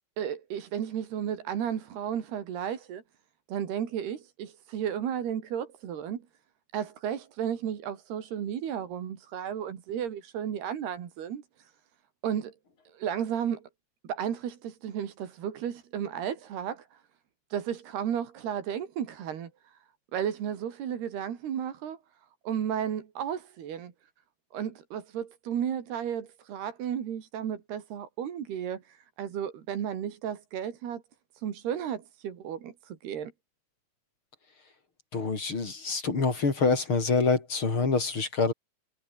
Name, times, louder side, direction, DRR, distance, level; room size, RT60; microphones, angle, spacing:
voice 1, 0.2-3.0 3.5-6.2 6.7-11.7 12.2-12.5 12.9-13.7 14.0-17.0 17.5-19.8 20.1-22.0 22.4-23.9 24.5-31.0 31.3-33.3, right 9 dB, 75° right, 4.7 m, -33 dB
voice 2, 35.1-38.5, left 4 dB, 30° left, 4.9 m, -26 dB
omnidirectional pair, 4.7 m